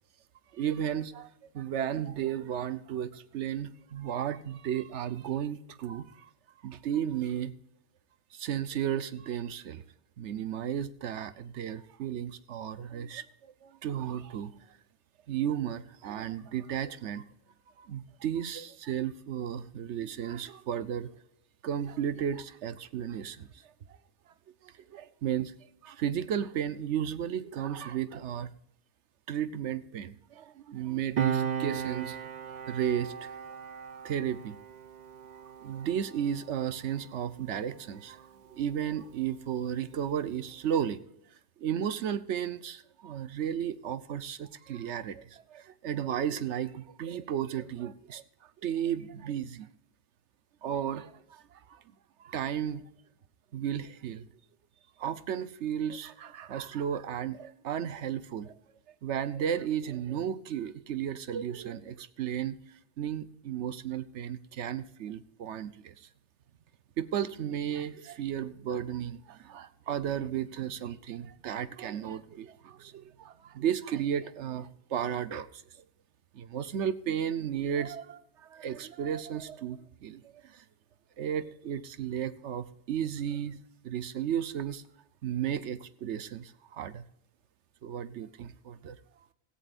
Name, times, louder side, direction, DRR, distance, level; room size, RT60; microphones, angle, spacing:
voice 1, 0.5-1.3 1.5-6.3 6.6-7.5 8.3-9.8 10.2-13.3 13.6-14.5 15.3-17.2 17.8-21.1 21.6-23.5 24.6-25.5 25.8-28.5 29.3-32.2 32.5-33.3 34.0-34.6 35.6-41.0 41.6-48.2 48.6-49.7 50.6-51.4 51.7-51.8 52.2-52.8 53.5-54.3 55.0-58.5 59.0-62.6 63.0-66.1 67.0-75.6 76.3-80.6 81.2-84.8 85.2-87.0 87.8-89.0, right 9 dB, 80° right, 14 dB, 1.0 m, -34 dB
Piano, 31.2-38.2 38.5-38.7, right 8 dB, 45° right, 0.7 m, -37 dB
17.0 x 14.5 x 2.5 m, 0.74 s
omnidirectional pair, 1.2 m